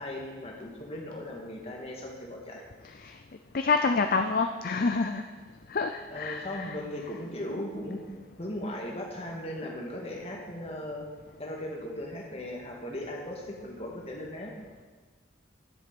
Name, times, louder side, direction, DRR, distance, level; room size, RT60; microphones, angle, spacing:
voice 1, 0.0-2.7 6.1-8.0 8.4-11.1 11.4-14.5, left 1 dB, 30° left, -1 dB, 2.0 m, -37 dB
voice 2, 3.5-5.2 5.7-6.8, left 4 dB, 45° left, 6 dB, 0.5 m, -27 dB
11.0 x 7.6 x 6.8 m, 1.4 s
head